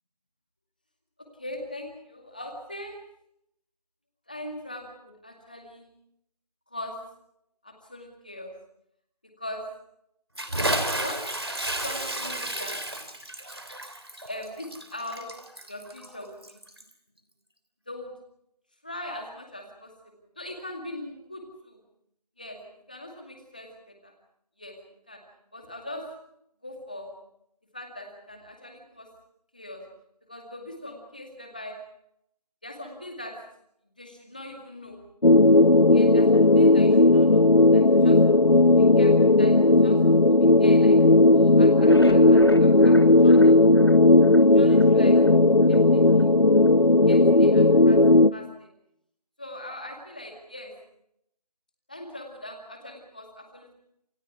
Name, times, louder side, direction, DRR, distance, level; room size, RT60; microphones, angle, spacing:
voice 1, 1.4-3.0 4.3-5.9 6.7-7.0 7.6-8.5 9.4-9.6 11.0-11.2 11.8-12.8 14.3-15.3 15.7-16.6 17.9-18.1 18.8-21.8 22.4-22.6 22.9-24.1 24.6-24.7 25.1-25.2 25.5-26.0 26.6-27.1 27.7-29.1 29.5-29.8 30.3-31.8 32.6-33.4 34.0-35.0 35.9-38.2 38.7-40.0 40.3-41.0 41.3-43.5 44.3-46.3 47.1-48.0 48.3-48.7 49.4-50.7 51.9-53.7, left 1 dB, 15° left, 2 dB, 2.2 m, -41 dB
Bathtub (filling or washing) / Splash splatter, 10.4-16.9, right 1 dB, 40° right, 3.2 m, -32 dB
sound 1, 35.2-48.3, left 2 dB, 75° left, 1.1 m, -16 dB
sound 2, 41.7-44.9 45.3-45.4 45.7-45.8 46.2-46.3, left 1 dB, 40° left, 1.0 m, -33 dB
28.0 x 27.5 x 4.7 m, 0.76 s
figure-of-eight pair, 175°, 21 cm